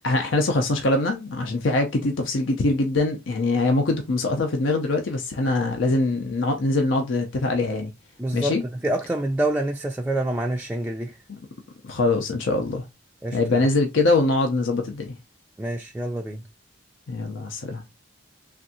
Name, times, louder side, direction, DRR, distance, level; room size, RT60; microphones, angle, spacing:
voice 1, 0.0-7.9 8.3-8.6 11.8-12.9 13.3-15.2 17.1-17.8, left 2 dB, 75° left, 0.6 m, -23 dB
voice 2, 8.2-11.2 13.2-13.7 15.6-16.4, right 1 dB, 10° right, 0.3 m, -27 dB
3.4 x 2.6 x 2.6 m
head